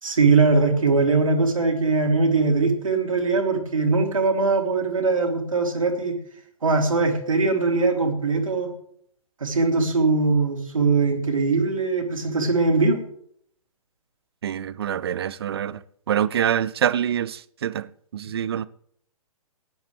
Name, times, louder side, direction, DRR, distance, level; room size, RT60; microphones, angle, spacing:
voice 1, 0.0-6.2 6.6-8.7 9.4-13.0, right 3 dB, 65° right, 3.0 m, -21 dB
voice 2, 14.4-18.7, right 9 dB, 45° right, 0.6 m, -26 dB
19.0 x 10.5 x 3.4 m
figure-of-eight pair, 125°, 19 cm